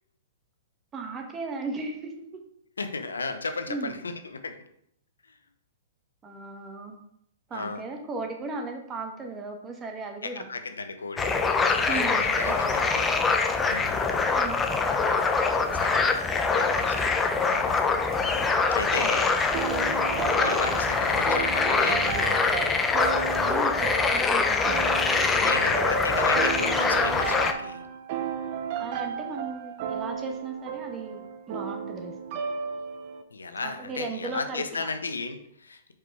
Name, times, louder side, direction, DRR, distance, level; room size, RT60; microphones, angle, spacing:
voice 1, 0.9-2.4 3.7-4.0 6.2-6.9 7.5-10.5 11.9-12.9 14.3-14.8 19.0-19.3 23.4-26.1 28.8-32.1 33.6-34.9, right 3 dB, 20° right, 3 dB, 1.2 m, -37 dB
voice 2, 2.8-4.6 7.5-7.8 10.2-11.4 11.7-13.1 13.6-14.1 15.7-19.3 20.4-22.8 25.4-27.9 33.3-35.8, left 4 dB, 85° left, 8 dB, 0.7 m, -35 dB
sound 1, 11.2-27.5, left 4 dB, 15° left, 0.6 m, -24 dB
sound 2, 19.5-33.2, right 7 dB, 50° right, 0.7 m, -34 dB
4.9 x 4.7 x 4.6 m, 0.71 s
hypercardioid pair, 120°, 0 cm